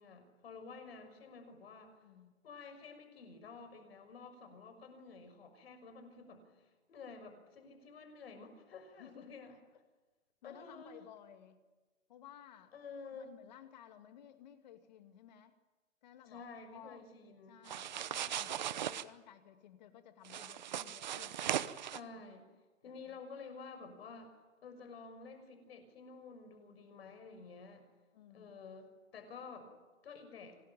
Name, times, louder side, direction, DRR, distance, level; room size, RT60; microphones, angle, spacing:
voice 1, 0.0-2.0 2.4-9.6 10.4-11.0 12.7-13.3 16.3-17.6 21.8-22.5 22.8-27.8 28.3-29.7 30.0-30.6, left 4 dB, 50° left, 8 dB, 6.2 m, -51 dB
voice 2, 2.0-2.3 9.0-9.3 10.4-11.6 12.1-12.7 13.1-15.5 16.0-16.4 16.7-17.0 17.5-21.4 22.1-22.3 22.9-23.2 23.8-24.0 27.0-27.2 28.1-28.5, left 10 dB, 35° left, 8 dB, 2.3 m, -57 dB
sound 1, 17.7-19.0 20.2-22.0, right 10 dB, 35° right, 0.9 m, -38 dB
26.0 x 19.5 x 9.1 m, 1.2 s
hypercardioid pair, 165°, 38 cm